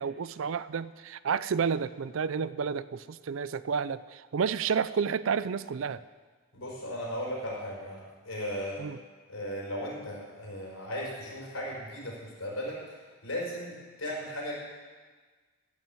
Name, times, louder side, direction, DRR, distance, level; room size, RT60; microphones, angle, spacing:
voice 1, 0.0-6.0 8.8-9.0, right 6 dB, 65° right, 16 dB, 0.4 m, -30 dB
voice 2, 6.5-8.9 9.3-14.5, equal, 75° left, -3 dB, 4.8 m, -36 dB
15.5 x 5.9 x 9.0 m, 1.4 s
head